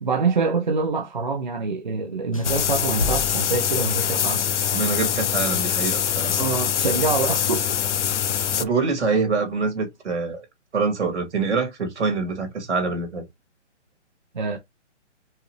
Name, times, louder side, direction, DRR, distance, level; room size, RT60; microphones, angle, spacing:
voice 1, 0.0-4.6 6.4-7.7 14.3-14.6, right 4 dB, 40° right, 0.7 m, -25 dB
sound 1, 2.3-4.5, left 3 dB, 30° left, 0.5 m, -33 dB
sound 2, 2.4-8.6, left 9 dB, 70° left, 0.6 m, -24 dB
voice 2, 4.7-6.4 8.6-10.5 10.7-13.2, right 4 dB, 65° right, 2.4 m, -25 dB
5.6 x 2.6 x 3.0 m
hypercardioid pair, 180°, 36 cm